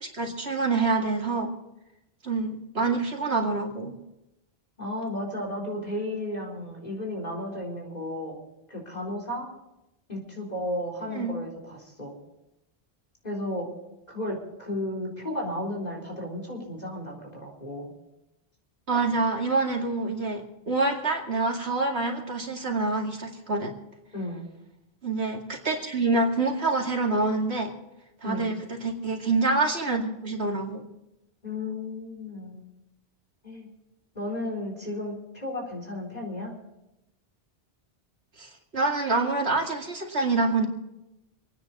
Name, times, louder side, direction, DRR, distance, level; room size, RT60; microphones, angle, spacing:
voice 1, 0.0-1.5 2.2-4.0 11.1-11.3 18.9-23.7 25.0-27.7 28.2-30.8 38.4-40.7, right 3 dB, 85° right, 1 dB, 2.5 m, -26 dB
voice 2, 4.8-8.3 8.7-9.4 10.1-12.1 13.2-13.7 14.1-17.9 24.1-24.5 28.2-28.6 31.4-32.6 33.4-33.7 34.1-36.5, left 1 dB, 40° left, -2 dB, 4.4 m, -33 dB
26.5 x 9.8 x 4.2 m, 0.91 s
omnidirectional pair, 1.1 m